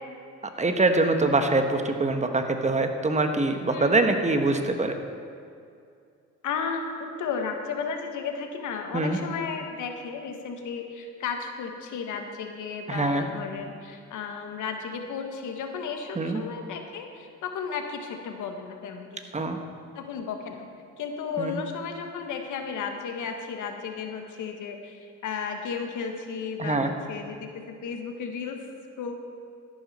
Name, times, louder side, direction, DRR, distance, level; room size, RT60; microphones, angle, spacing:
voice 1, 0.6-4.9 8.9-9.2 12.9-13.3 16.2-16.4 19.3-19.6 21.4-21.6 26.6-27.0, right 2 dB, 25° right, 6 dB, 1.2 m, -24 dB
voice 2, 3.7-4.1 6.4-19.2 19.9-20.7 21.0-28.6 29.0-29.1, left 6 dB, 80° left, 4 dB, 1.5 m, -34 dB
13.5 x 11.5 x 4.3 m, 2.4 s
cardioid pair, 90°, 30 cm